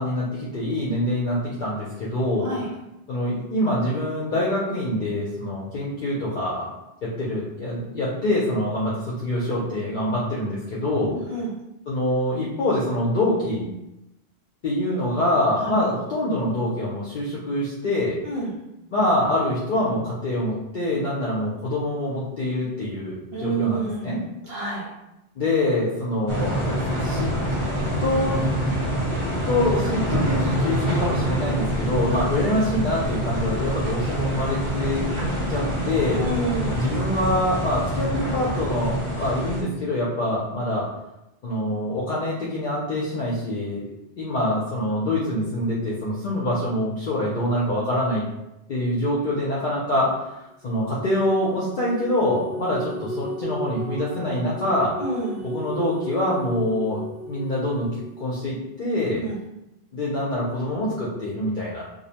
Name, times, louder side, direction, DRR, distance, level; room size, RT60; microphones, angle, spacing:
voice 1, 0.0-2.5 3.1-6.7 7.0-11.2 11.9-13.7 14.6-18.2 18.9-24.2 25.4-26.7 27.0-27.3 28.0-28.4 29.5-35.0 35.5-36.2 36.7-40.9 41.4-43.8 44.2-48.2 48.7-54.9 55.4-57.0 57.3-57.9 58.2-59.2 59.9-61.8, left 1 dB, 55° left, -7 dB, 0.7 m, -25 dB
voice 2, 11.1-11.5 15.6-15.7 18.2-18.6 23.3-24.0 24.4-24.9 31.9-32.0 36.2-36.8 55.0-55.4 59.1-59.4, right 3 dB, 70° right, -6 dB, 1.1 m, -28 dB
sound 1, 26.3-39.6, right 1 dB, 30° right, 0.9 m, -26 dB
sound 2, 50.6-58.4, right 1 dB, ahead, 0.4 m, -35 dB
2.6 x 2.1 x 2.8 m, 0.90 s
omnidirectional pair, 1.1 m